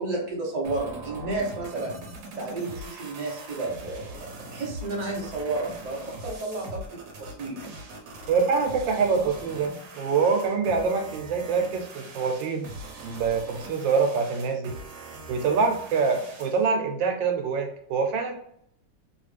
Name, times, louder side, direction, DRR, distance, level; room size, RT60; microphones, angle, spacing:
voice 1, 0.0-1.9 2.4-7.6, right 2 dB, 35° right, -2 dB, 0.7 m, -32 dB
sound 1, 0.6-16.6, right 2 dB, 65° right, 1.2 m, -41 dB
voice 2, 8.3-12.7 13.0-14.8 15.3-18.3, right 5 dB, 85° right, 4 dB, 1.4 m, -25 dB
3.1 x 2.4 x 3.2 m, 0.68 s
omnidirectional pair, 2.0 m